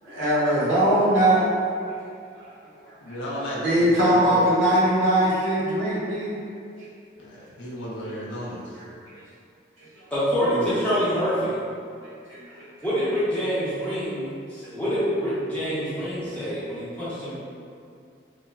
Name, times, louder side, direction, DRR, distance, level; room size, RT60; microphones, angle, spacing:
voice 1, 0.0-1.5 2.4-2.5 3.6-6.4 6.8-6.9 8.8-8.9 10.4-10.8 12.3-12.7 16.2-16.3, right 1 dB, 85° right, -8 dB, 0.7 m, -21 dB
voice 2, 3.0-4.5 7.2-8.8, equal, 85° left, -6 dB, 0.4 m, -34 dB
voice 3, 10.1-11.6 12.8-17.3, equal, 5° left, -12 dB, 0.7 m, -26 dB
2.9 x 2.0 x 2.3 m, 2.4 s
head